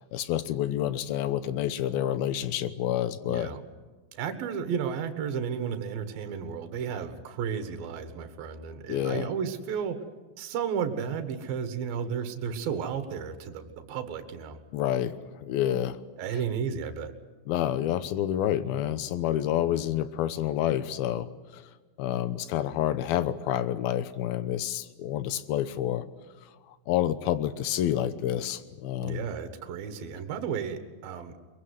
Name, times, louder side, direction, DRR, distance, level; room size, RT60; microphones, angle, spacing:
voice 1, 0.0-3.5 8.9-9.3 14.7-16.0 17.5-21.7 22.0-26.1 26.7-29.3, left 11 dB, 80° left, 14 dB, 2.9 m, -28 dB
voice 2, 3.3-3.6 4.2-10.0 10.4-14.6 16.2-17.1 29.0-31.3, right 7 dB, 75° right, 9 dB, 3.3 m, -33 dB
23.0 x 22.0 x 9.5 m, 1.3 s
omnidirectional pair, 4.3 m